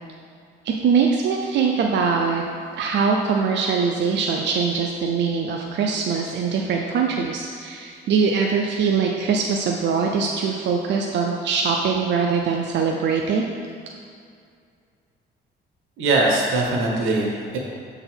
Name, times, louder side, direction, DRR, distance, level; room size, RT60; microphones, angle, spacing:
voice 1, 0.6-2.4 2.7-13.5, right 5 dB, 60° right, 1 dB, 0.5 m, -22 dB
voice 2, 16.0-17.6, right 2 dB, 90° right, -1 dB, 1.1 m, -21 dB
6.6 x 4.0 x 4.4 m, 2.3 s
cardioid pair, 90°, 20 cm